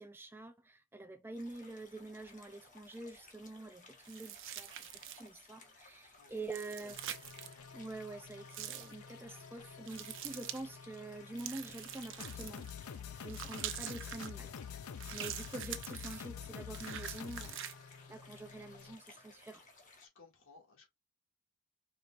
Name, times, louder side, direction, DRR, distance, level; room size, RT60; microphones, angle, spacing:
voice 1, 0.0-7.0 7.7-12.7 13.2-14.5 15.1-19.6, right 2 dB, 10° right, 0.4 m, -47 dB
sound 1, 1.3-20.1, left 3 dB, 35° left, 1.3 m, -60 dB
sound 2, 4.0-5.4 6.4-7.5 8.5-8.9 9.9-10.6 11.4-12.7 13.3-14.3 15.0-16.3 16.7-17.7, right 11 dB, 60° right, 0.7 m, -45 dB
voice 2, 6.2-6.5 6.8-6.9 15.3-15.4 20.0-20.9, left 3 dB, 65° left, 2.1 m, -61 dB
sound 3, 6.9-19.0, left 7 dB, 80° left, 0.5 m, -48 dB
5.1 x 4.1 x 2.5 m
head